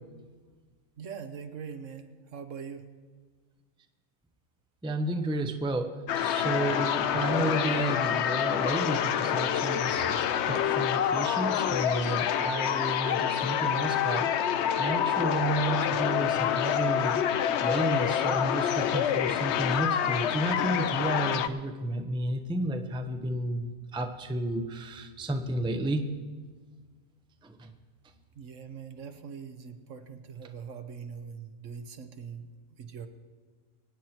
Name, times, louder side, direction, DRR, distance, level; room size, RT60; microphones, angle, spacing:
voice 1, 1.0-2.8 28.4-32.5 32.8-33.1, right 6 dB, 65° right, 8 dB, 1.3 m, -42 dB
voice 2, 4.8-14.3 14.7-17.3 17.6-26.1 27.4-27.7, right 1 dB, 5° right, 6 dB, 0.6 m, -32 dB
sound 1, 6.1-21.5, left 9 dB, 65° left, 0.8 m, -27 dB
24.0 x 9.3 x 4.4 m, 1.4 s
omnidirectional pair, 1.4 m